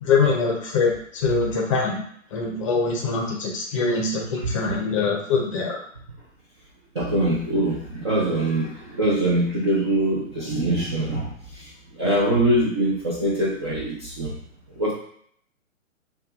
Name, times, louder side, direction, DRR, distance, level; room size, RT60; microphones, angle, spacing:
voice 1, 0.0-2.0 2.3-5.8, left 4 dB, 25° left, 0 dB, 0.7 m, -23 dB
voice 2, 6.9-11.7 12.0-14.4 14.8-14.9, right 1 dB, 20° right, -5 dB, 0.4 m, -23 dB
6.5 x 2.3 x 2.5 m, 0.64 s
figure-of-eight pair, 130°, 40 cm